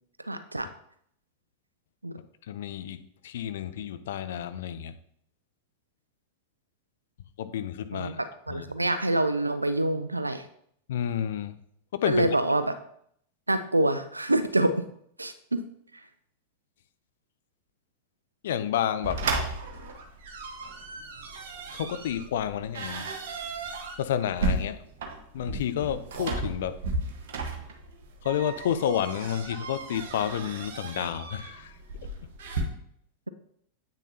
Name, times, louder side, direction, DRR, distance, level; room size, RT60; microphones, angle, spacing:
voice 1, 0.3-0.7 2.0-2.2 7.9-10.4 12.1-12.7 13.5-14.8 15.2-15.6, right 1 dB, 85° right, 11 dB, 0.4 m, -26 dB
voice 2, 2.5-3.0 3.2-4.9 7.4-8.2 8.5-8.6 10.9-11.6 11.9-12.3 18.4-19.2 21.7-23.1 24.0-24.8 25.3-26.8 28.2-31.7, left 9 dB, 60° left, 11 dB, 0.5 m, -30 dB
sound 1, 19.0-32.6, right 3 dB, 55° right, 1.2 m, -34 dB
8.3 x 6.5 x 2.8 m, 0.68 s
figure-of-eight pair, 90°, 0 cm